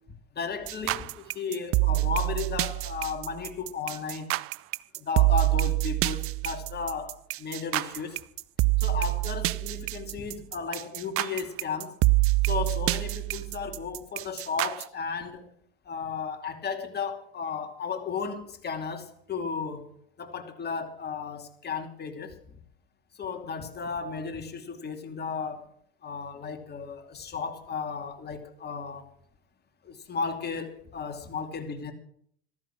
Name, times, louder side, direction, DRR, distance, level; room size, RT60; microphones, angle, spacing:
voice 1, 0.3-4.3 5.0-8.2 8.8-12.0 12.4-15.5 15.9-22.4 23.2-25.7 26.0-29.1 29.8-31.9, left 5 dB, 35° left, 6 dB, 2.6 m, -34 dB
sound 1, 0.7-14.8, right 23 dB, 50° right, 0.5 m, -26 dB
14.0 x 13.0 x 6.1 m, 0.64 s
hypercardioid pair, 85°, 29 cm